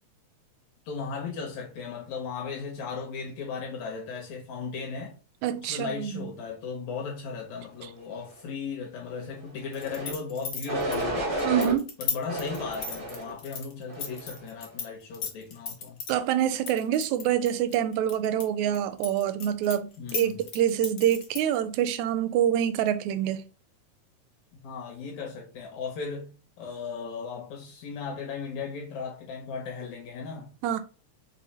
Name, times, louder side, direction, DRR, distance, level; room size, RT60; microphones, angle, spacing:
voice 1, 0.9-5.2 5.7-11.4 12.0-16.0 20.0-20.4 24.6-30.5, left 5 dB, 75° left, 2.2 m, -36 dB
voice 2, 5.4-6.3 11.4-11.9 16.1-23.4 30.6-30.8, right 10 dB, 80° right, 1.8 m, -26 dB
sound 1, 9.7-14.9 15.1-16.1 16.7-18.4 18.7-21.5, left 6 dB, 55° left, 1.5 m, -35 dB
sound 2, 9.7-10.1 10.7-11.7 12.3-13.3 13.9-14.3, right 1 dB, 60° right, 0.5 m, -31 dB
5.4 x 2.1 x 4.1 m
omnidirectional pair, 3.4 m